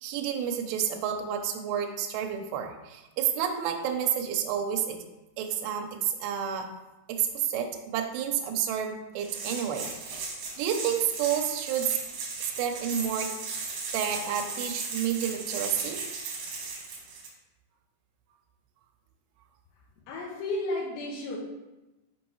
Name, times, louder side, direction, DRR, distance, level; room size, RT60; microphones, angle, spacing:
voice 1, 0.0-5.0 5.4-6.7 7.1-12.0 12.4-13.3 13.9-16.0, right 9 dB, 80° right, 4 dB, 2.7 m, -30 dB
sound 1, 9.2-17.3, right 4 dB, 65° right, 2.3 m, -36 dB
voice 2, 20.1-21.4, left 2 dB, 80° left, -5 dB, 3.0 m, -32 dB
6.2 x 5.8 x 3.0 m, 1.0 s
omnidirectional pair, 5.1 m